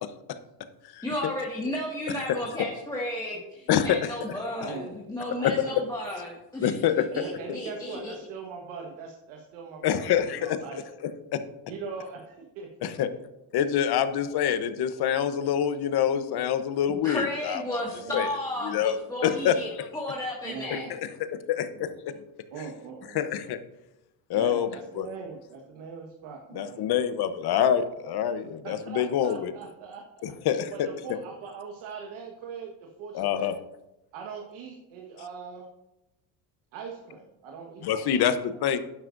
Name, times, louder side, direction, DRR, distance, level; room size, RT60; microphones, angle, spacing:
voice 1, 1.0-6.7 7.0-8.1 17.0-19.7 19.9-20.9, left 1 dB, 10° left, -5 dB, 1.9 m, -33 dB
voice 2, 3.7-4.1 5.4-5.5 6.6-7.1 9.8-10.8 11.3-11.4 12.8-13.1 13.5-17.8 18.1-18.3 18.6-19.0 19.2-19.8 20.7-21.0 21.5-21.9 23.1-23.6 24.3-24.7 25.0-25.1 26.5-29.5 30.2-30.9 33.1-33.5 37.8-38.8, left 9 dB, 50° left, 11 dB, 1.0 m, -26 dB
voice 3, 5.4-5.8 7.1-10.8 11.7-12.9 18.0-18.2 20.4-21.1 21.7-21.9 22.5-23.2 24.3-27.1 28.6-30.3 30.7-33.6 34.1-35.7 36.7-38.4 38.7-38.8, right 5 dB, 75° right, 1 dB, 1.6 m, -41 dB
11.5 x 9.9 x 2.6 m, 0.92 s
cardioid pair, 120°, 48 cm